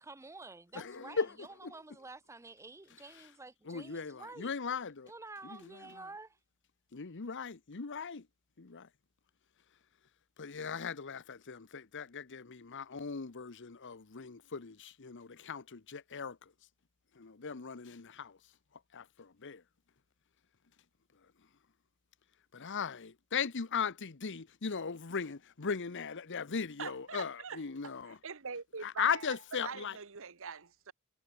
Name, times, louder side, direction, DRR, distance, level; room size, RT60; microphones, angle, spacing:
voice 1, 0.0-4.5 5.1-6.4, right 3 dB, 15° right, 0.6 m, -50 dB
voice 2, 0.7-1.7 3.7-5.1 5.4-6.1 6.9-8.2 8.6-8.9 10.4-16.4 17.2-18.4 18.9-19.6 22.5-28.2 28.8-30.0, left 6 dB, 55° left, 0.9 m, -38 dB
voice 3, 26.8-29.3 29.6-30.9, right 5 dB, 65° right, 1.3 m, -44 dB
head